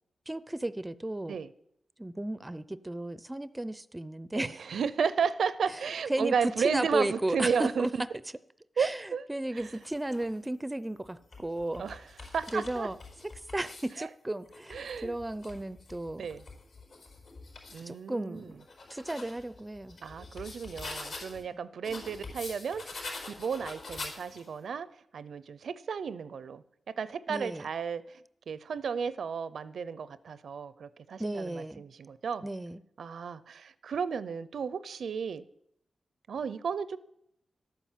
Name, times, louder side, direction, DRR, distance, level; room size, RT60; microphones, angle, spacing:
voice 1, 0.3-1.4 2.0-4.6 6.1-6.3 6.6-7.9 8.8-11.8 12.5-13.0 13.5-16.2 17.9-18.6 18.9-20.0 27.3-27.6 31.2-31.9 32.4-32.8, right 1 dB, 15° right, 16 dB, 0.5 m, -34 dB
voice 2, 4.3-7.9 8.8-9.3 9.5-9.7 11.8-12.9 14.0-14.1 14.7-15.2 16.2-16.4 17.7-18.5 20.0-22.8 23.4-24.9 25.1-32.5 33.0-35.4 36.3-37.0, right 6 dB, 80° right, 16 dB, 0.6 m, -33 dB
sound 1, 9.6-10.4 11.1-14.0 14.5-17.9 18.4-21.4 21.8-24.6, left 3 dB, 65° left, 4.3 m, -45 dB
12.0 x 9.2 x 7.4 m, 0.74 s
wide cardioid pair, 115°, 0 cm